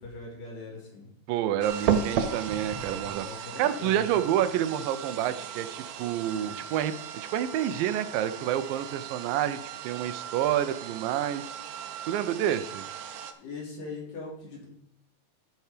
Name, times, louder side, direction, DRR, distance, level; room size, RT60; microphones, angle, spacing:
voice 1, 0.0-1.1 2.6-4.5 13.4-14.7, left 3 dB, 70° left, -3 dB, 4.5 m, -41 dB
voice 2, 1.3-3.3 3.6-6.9 7.3-9.6 9.8-11.5 12.1-12.8, right 11 dB, 90° right, 12 dB, 2.4 m, -28 dB
sound 1, 1.6-13.3, right 8 dB, 70° right, 1.7 m, -35 dB
13.5 x 4.7 x 5.0 m, 0.69 s
omnidirectional pair, 3.9 m